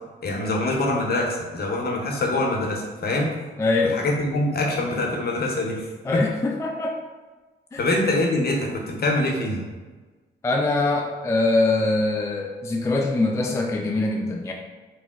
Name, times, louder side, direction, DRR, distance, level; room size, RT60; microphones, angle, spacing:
voice 1, 0.2-3.3 3.8-6.3 7.8-9.6, left 2 dB, 50° left, -1 dB, 0.8 m, -24 dB
voice 2, 3.6-4.0 6.1-7.0 7.7-7.8 10.4-14.5, left 2 dB, 15° left, 0 dB, 0.3 m, -23 dB
2.9 x 2.0 x 3.4 m, 1.3 s
supercardioid pair, 60°, 21 cm